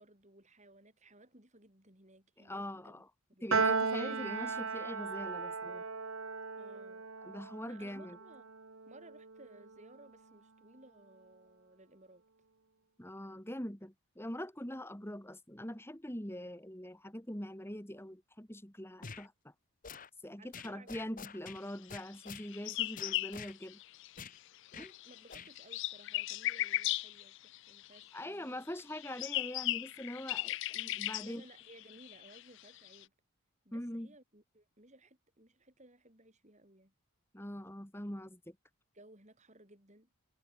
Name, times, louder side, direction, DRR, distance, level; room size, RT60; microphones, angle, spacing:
voice 1, 0.0-3.0 3.3-3.7 6.6-7.1 7.6-8.5 8.8-12.2 20.4-20.9 24.7-28.6 31.2-33.1 33.6-36.9 38.9-40.1, right 1 dB, 30° right, 6.9 m, -59 dB
voice 2, 2.4-3.1 3.4-5.8 7.2-8.2 13.0-19.5 20.2-23.8 24.8-24.9 28.1-31.4 33.7-34.1 37.3-38.6, left 1 dB, 10° left, 2.5 m, -43 dB
Piano, 3.5-10.0, right 4 dB, 65° right, 1.4 m, -36 dB
sound 1, 19.0-19.3 19.8-20.1 20.5-21.6 21.9-22.5 23.0-23.5 24.2-24.4 24.7-24.9 25.3-25.5, left 6 dB, 35° left, 1.0 m, -47 dB
sound 2, 22.2-24.4 24.7-28.2 28.8-33.0, left 16 dB, 55° left, 0.4 m, -37 dB
head